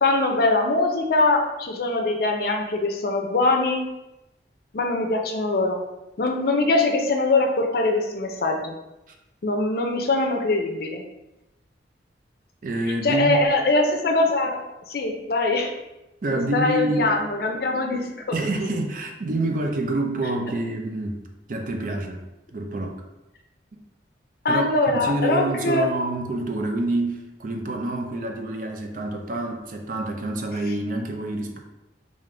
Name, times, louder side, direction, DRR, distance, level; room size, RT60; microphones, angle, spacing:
voice 1, 0.0-3.8 4.7-5.8 6.2-8.7 9.4-11.0 13.0-14.6 14.9-15.7 16.3-18.3 24.4-25.9, left 2 dB, 55° left, 3 dB, 0.5 m, -22 dB
voice 2, 12.6-13.4 16.2-17.2 18.3-21.2 21.5-22.2 22.5-23.0 23.7-23.8 24.5-31.6, right 2 dB, 45° right, 3 dB, 0.4 m, -27 dB
3.4 x 2.5 x 3.7 m, 0.96 s
head